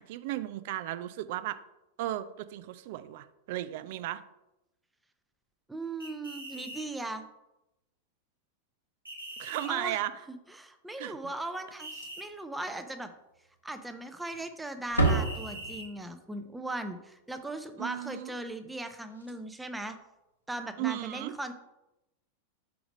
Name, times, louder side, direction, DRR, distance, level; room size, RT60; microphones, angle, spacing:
voice 1, 0.0-1.6 2.0-4.2 9.4-10.1 11.0-11.2 17.8-18.3 20.8-21.3, right 14 dB, 50° right, 13 dB, 0.4 m, -35 dB
voice 2, 5.7-7.2 9.7-10.0 10.3-13.1 13.6-20.0 20.5-21.5, right 2 dB, 5° right, 8 dB, 0.6 m, -38 dB
sound 1, 6.0-6.9 9.1-9.7 11.8-12.2 15.0-15.9, right 1 dB, 80° right, 1.4 m, -43 dB
Slam, 11.8-12.4 12.7-12.8 13.3-13.4 14.2-14.5 14.8-16.1 18.8-18.9 19.1-19.3 20.8-21.0, right 3 dB, 85° left, 1.0 m, -31 dB
5.0 x 4.6 x 5.2 m, 0.91 s
figure-of-eight pair, 90°, 0 cm